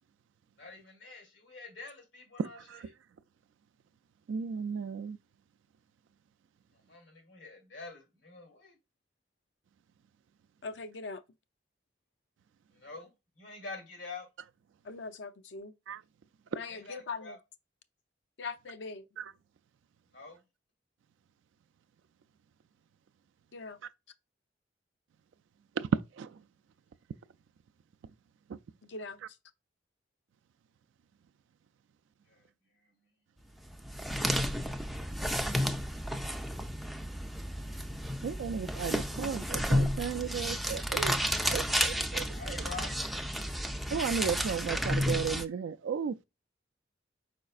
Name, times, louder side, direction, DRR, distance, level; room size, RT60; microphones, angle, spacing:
voice 1, 0.6-2.6 6.9-8.8 12.7-14.3 16.7-17.4 20.1-20.4 32.3-32.5 32.8-32.9 42.4-43.0, left 3 dB, 85° left, 2.3 m, -46 dB
voice 2, 2.4-2.9 4.3-5.2 15.9-16.0 19.2-19.3 25.8-25.9 26.2-26.4 28.5-28.6 38.2-41.2 41.5-42.6 43.9-46.2, right 6 dB, 85° right, 0.3 m, -35 dB
voice 3, 10.6-11.2 14.9-15.7 16.5-17.4 18.4-19.1 23.5-23.8 28.8-29.2, left 4 dB, 65° left, 0.5 m, -41 dB
sound 1, 33.7-45.4, equal, ahead, 0.3 m, -32 dB
4.7 x 4.3 x 2.4 m
head